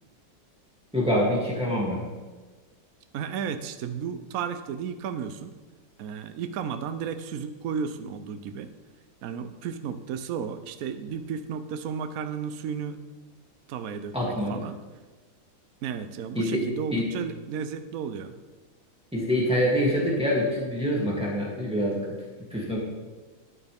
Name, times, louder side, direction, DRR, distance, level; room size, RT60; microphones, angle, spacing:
voice 1, 0.9-2.0 14.1-14.5 16.3-16.6 16.9-17.1 19.1-22.0 22.5-22.8, equal, 5° right, -5 dB, 2.5 m, -25 dB
voice 2, 3.1-5.5 6.0-8.7 9.2-13.0 13.7-14.8 15.8-18.3, right 7 dB, 70° right, 9 dB, 0.8 m, -33 dB
13.0 x 9.1 x 3.5 m, 1.3 s
omnidirectional pair, 2.2 m